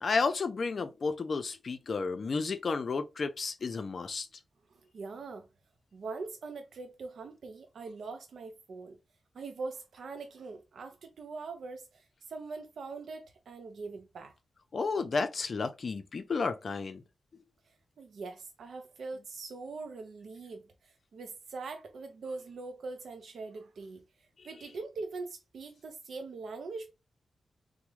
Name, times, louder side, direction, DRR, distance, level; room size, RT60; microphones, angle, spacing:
voice 1, 0.0-4.3 14.7-17.0, left 4 dB, 50° left, 0.5 m, -32 dB
voice 2, 4.7-5.5 5.9-9.0 9.3-14.4 17.7-26.9, right 3 dB, 75° right, 0.4 m, -42 dB
3.4 x 2.1 x 3.1 m
wide cardioid pair, 120°, 0 cm